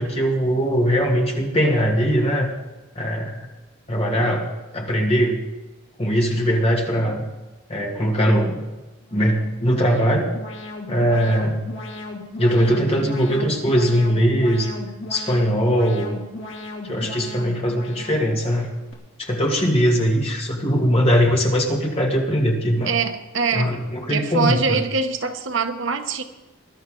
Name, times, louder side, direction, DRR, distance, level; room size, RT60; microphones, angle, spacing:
voice 1, 0.0-2.5 3.0-3.4 3.9-4.5 4.7-5.4 6.0-7.2 7.7-8.6 9.1-10.3 10.9-11.7 12.4-14.7 15.1-16.1 16.8-18.7 19.2-22.9 23.5-24.8, equal, 30° left, -1 dB, 2.5 m, -20 dB
Alarm, 9.0-18.9, left 2 dB, 65° left, 3.0 m, -36 dB
voice 2, 22.8-23.7 24.1-26.2, right 5 dB, 65° right, 7 dB, 1.1 m, -23 dB
21.0 x 11.5 x 3.9 m, 1.1 s
head